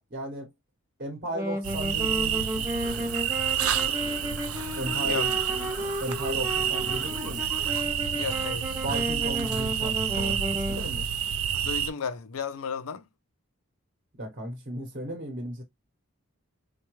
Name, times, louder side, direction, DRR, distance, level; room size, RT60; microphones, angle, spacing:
voice 1, 0.1-0.5 1.0-2.7 4.7-5.3 6.0-7.4 8.8-11.1 14.2-15.6, right 1 dB, 40° right, 1.0 m, -35 dB
Wind instrument woodwind instrument, 1.3-10.9, equal, 15° right, 0.5 m, -33 dB
sound 1, 1.6-11.9, right 9 dB, 75° right, 0.4 m, -29 dB
sound 2, 2.8-7.8, right 1 dB, 10° left, 0.8 m, -44 dB
voice 2, 5.0-5.3 5.6-5.7 8.1-8.8 11.6-13.0, left 6 dB, 75° left, 0.5 m, -34 dB
4.4 x 2.2 x 3.0 m
head